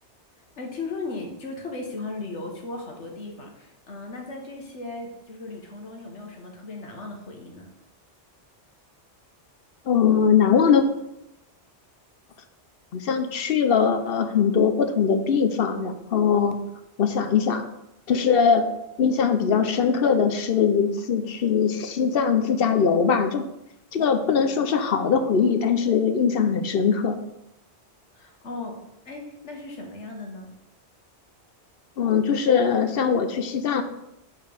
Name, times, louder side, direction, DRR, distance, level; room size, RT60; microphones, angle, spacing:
voice 1, 0.6-7.7 28.1-28.8 29.0-30.5, left 3 dB, 85° left, 1 dB, 1.7 m, -36 dB
voice 2, 9.8-10.8 12.9-16.6 17.0-17.7 18.1-18.7 19.0-23.4 23.9-27.2 32.0-33.8, left 6 dB, 60° left, 9 dB, 0.8 m, -21 dB
6.7 x 4.7 x 5.3 m, 0.85 s
omnidirectional pair, 1.1 m